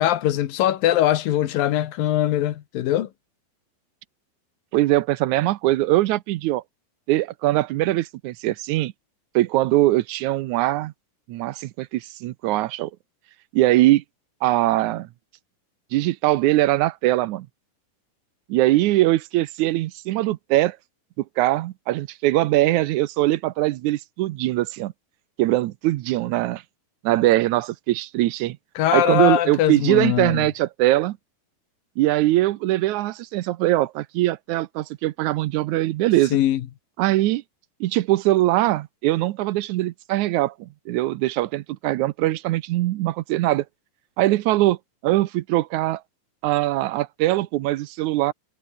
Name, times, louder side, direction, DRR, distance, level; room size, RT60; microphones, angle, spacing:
voice 1, 0.0-3.1 28.8-30.4 36.3-36.6, left 12 dB, 80° left, 3.1 m, -21 dB
voice 2, 4.7-6.6 7.1-8.9 9.4-10.9 11.3-12.9 13.5-14.0 14.4-15.1 15.9-17.5 18.5-20.8 21.4-24.9 25.4-26.6 27.0-28.6 28.9-31.2 32.0-36.4 37.0-37.4 37.8-43.7 44.2-44.8 45.0-46.0 46.4-48.3, right 16 dB, 75° right, 1.9 m, -21 dB
omnidirectional pair, 4.0 m